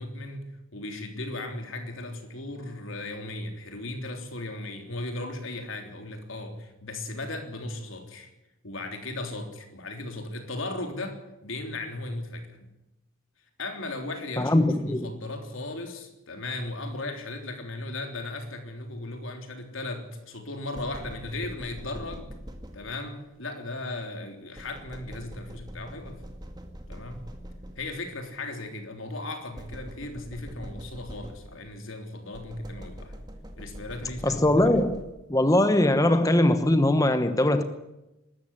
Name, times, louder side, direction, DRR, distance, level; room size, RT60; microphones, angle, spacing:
voice 1, 0.0-8.3 8.6-12.7 13.6-22.4 22.7-26.2 26.9-27.2 27.8-33.2 33.6-34.5, left 2 dB, 75° left, 3.5 m, -36 dB
voice 2, 14.4-15.1 34.2-35.0 35.3-37.6, left 1 dB, 15° left, 1.0 m, -21 dB
sound 1, 20.7-23.2 24.6-28.1 29.6-31.8 32.3-35.4, equal, 20° right, 2.1 m, -43 dB
22.0 x 13.0 x 9.8 m
head